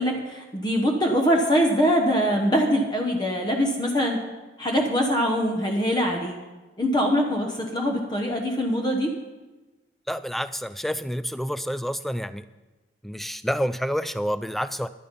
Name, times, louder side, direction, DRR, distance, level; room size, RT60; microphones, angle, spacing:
voice 1, 0.0-4.2 4.6-6.4 6.8-9.1, equal, 25° left, 2 dB, 1.1 m, -23 dB
voice 2, 10.1-12.5 13.0-14.9, equal, ahead, 14 dB, 0.3 m, -28 dB
13.0 x 11.0 x 5.3 m, 1.2 s
head